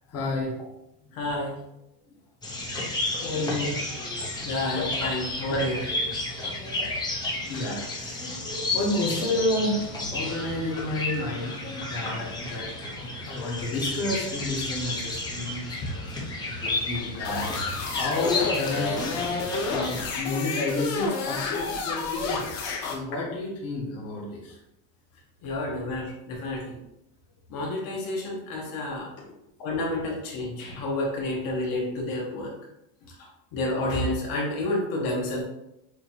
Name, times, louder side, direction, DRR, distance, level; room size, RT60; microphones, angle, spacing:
voice 1, 0.1-0.6 3.1-4.9 5.8-6.1 6.4-6.9 7.5-12.7 12.9-19.0 19.6-22.5 22.9-24.6, left 2 dB, 30° left, -5 dB, 1.2 m, -31 dB
voice 2, 1.1-1.6 4.4-5.8 6.9-7.0 25.4-26.8 27.5-29.1 29.6-32.5 33.5-35.4, left 1 dB, 45° left, -2 dB, 1.3 m, -29 dB
sound 1, 2.4-20.0, left 2 dB, 10° left, 0.5 m, -32 dB
sound 2, 17.2-23.0, left 4 dB, 70° left, 1.3 m, -30 dB
6.5 x 2.7 x 3.0 m, 0.85 s
cardioid pair, 160°, 48 cm